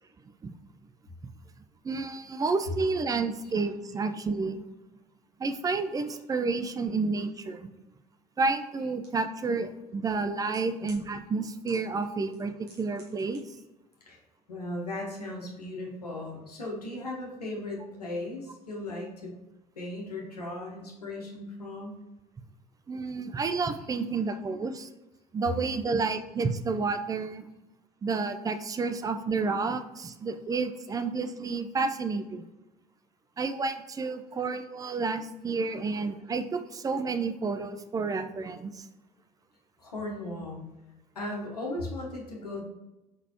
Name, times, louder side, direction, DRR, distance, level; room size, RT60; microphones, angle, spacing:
voice 1, 1.8-4.6 5.4-7.7 8.4-13.4 22.9-24.9 25.3-27.4 28.0-32.5 33.4-38.9, right 4 dB, 20° right, 8 dB, 0.4 m, -30 dB
sound 1, 9.0-9.1 10.1-11.0 11.7-12.1 12.3-13.4 13.6-13.7, right 2 dB, 65° right, 1.4 m, -53 dB
voice 2, 14.5-19.3 19.8-22.0 26.0-26.1 39.8-40.7 41.1-42.6, left 2 dB, 80° left, -1 dB, 0.8 m, -37 dB
4.8 x 3.9 x 2.8 m, 1.0 s
figure-of-eight pair, 55°, 20 cm